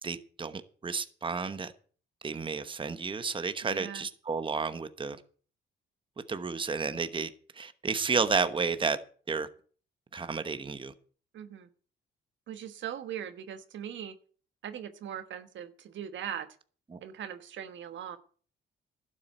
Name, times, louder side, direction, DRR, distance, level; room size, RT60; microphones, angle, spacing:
voice 1, 0.0-1.7 2.2-5.2 6.3-9.0 9.3-9.5 10.1-10.9 16.9-17.0, right 5 dB, 25° right, 1.0 m, -32 dB
voice 2, 3.6-4.1 11.3-11.7 12.5-14.1 14.6-16.5 17.0-18.2, right 10 dB, 70° right, 1.2 m, -40 dB
12.0 x 7.6 x 7.8 m
cardioid pair, 90°, 20 cm